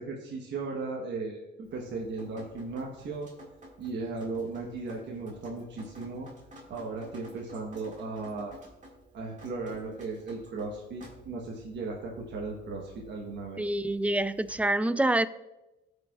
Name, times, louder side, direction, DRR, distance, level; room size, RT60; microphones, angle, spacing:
voice 1, 0.0-3.3 3.8-6.3 6.7-8.6 9.1-13.6, right 3 dB, 65° right, -1 dB, 1.1 m, -36 dB
Drip, 1.6-14.6, equal, 40° right, 1.9 m, -53 dB
voice 2, 13.6-15.3, right 1 dB, 5° right, 14 dB, 0.3 m, -26 dB
14.5 x 5.0 x 2.4 m, 0.96 s
cardioid pair, 90°, 20 cm